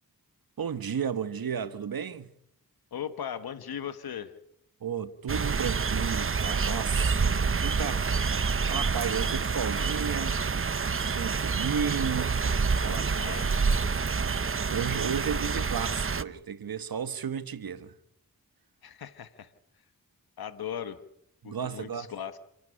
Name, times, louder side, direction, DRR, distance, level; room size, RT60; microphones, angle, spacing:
voice 1, 0.6-2.3 4.8-8.1 8.7-10.4 11.0-12.5 12.8-13.4 14.7-17.9 21.4-22.1, right 7 dB, 75° right, 1.4 m, -33 dB
voice 2, 2.9-4.3 12.9-13.7 18.8-19.5 20.4-21.0 21.4-22.4, left 8 dB, 85° left, 1.3 m, -38 dB
sound 1, 5.3-16.2, right 5 dB, 35° right, 0.9 m, -27 dB
27.0 x 12.0 x 10.0 m
cardioid pair, 55°, 36 cm